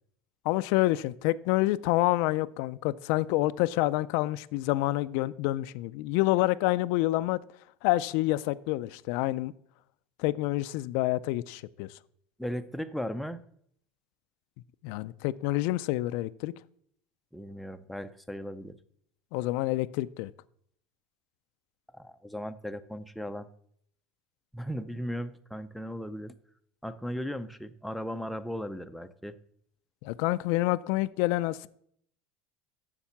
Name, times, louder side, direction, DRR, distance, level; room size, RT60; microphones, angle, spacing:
voice 1, 0.5-7.4 7.8-9.5 10.2-11.9 14.8-16.5 19.3-20.3 30.0-31.7, left 18 dB, 65° left, 14 dB, 0.3 m, -28 dB
voice 2, 12.4-13.4 17.3-18.7 22.0-23.5 24.5-26.3 26.8-29.4, equal, ahead, 8 dB, 0.5 m, -37 dB
7.1 x 6.6 x 7.2 m, 0.68 s
supercardioid pair, 130°, 4 cm